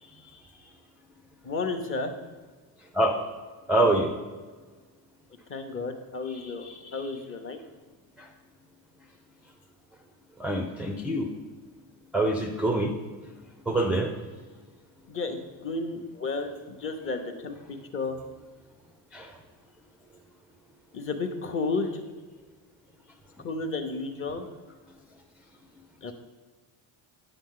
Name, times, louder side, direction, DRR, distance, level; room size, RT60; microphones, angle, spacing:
voice 1, 1.4-2.1 5.5-6.7 6.9-7.6 15.1-18.2 20.9-22.0 23.4-24.5 26.0-26.1, left 3 dB, 30° left, 5 dB, 0.7 m, -32 dB
voice 2, 3.7-4.1 6.3-6.8 10.4-11.3 12.1-12.9 13.7-14.1 19.1-19.3, right 1 dB, 5° right, 2 dB, 0.3 m, -25 dB
8.9 x 5.8 x 3.7 m, 1.4 s
cardioid pair, 140°, 42 cm